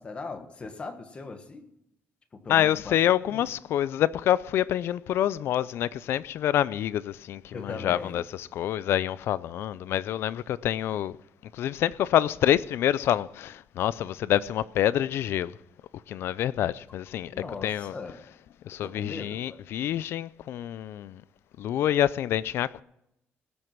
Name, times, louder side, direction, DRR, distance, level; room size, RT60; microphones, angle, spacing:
voice 1, 0.0-1.7 2.3-3.0 3.3-3.4 7.5-8.2 17.3-18.2 18.7-19.6, left 4 dB, 25° left, 1.4 m, -39 dB
voice 2, 2.5-11.2 11.5-15.5 16.1-17.3 17.6-17.9 18.6-21.2 21.6-22.8, left 11 dB, 65° left, 0.4 m, -27 dB
18.0 x 7.8 x 5.9 m
cardioid pair, 175°, 4 cm